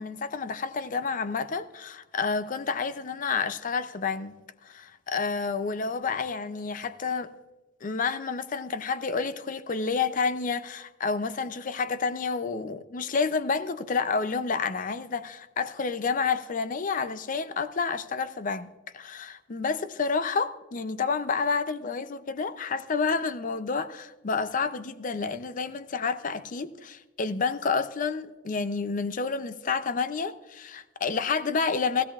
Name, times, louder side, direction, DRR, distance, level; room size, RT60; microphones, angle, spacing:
voice 1, 0.0-4.3 4.6-7.3 7.8-32.0, left 5 dB, 40° left, 0.5 m, -29 dB
16.0 x 15.5 x 2.4 m
head